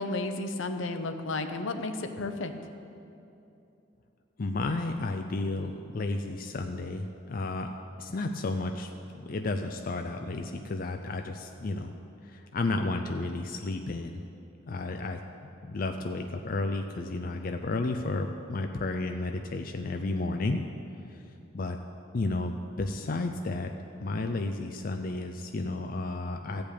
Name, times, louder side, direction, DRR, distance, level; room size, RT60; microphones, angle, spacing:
voice 1, 0.0-2.5, left 2 dB, 75° left, 7 dB, 0.8 m, -32 dB
voice 2, 4.4-7.7 8.0-11.9 12.2-14.2 14.6-20.6 21.1-21.2 21.5-21.8 22.1-23.7 24.0-26.6, left 2 dB, 45° left, 5 dB, 0.5 m, -32 dB
13.5 x 5.2 x 8.5 m, 2.7 s
head